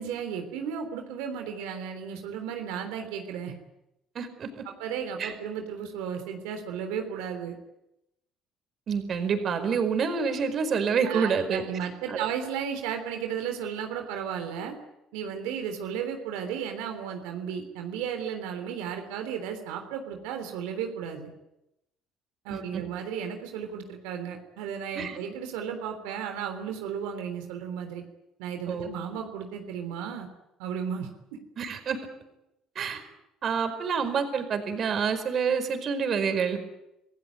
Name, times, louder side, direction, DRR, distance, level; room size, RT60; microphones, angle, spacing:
voice 1, 0.0-3.5 4.6-7.6 11.0-14.8 15.1-21.3 22.4-28.0 28.4-30.3 30.6-31.4, right 8 dB, 90° right, 5 dB, 3.4 m, -34 dB
voice 2, 4.1-4.6 5.2-5.3 8.9-12.2 22.5-22.8 24.9-25.2 28.7-28.9 31.6-32.0 32.7-33.0 33.4-36.6, right 6 dB, 50° right, 8 dB, 4.9 m, -28 dB
27.0 x 16.0 x 9.4 m, 0.88 s
supercardioid pair, 85°, 0 cm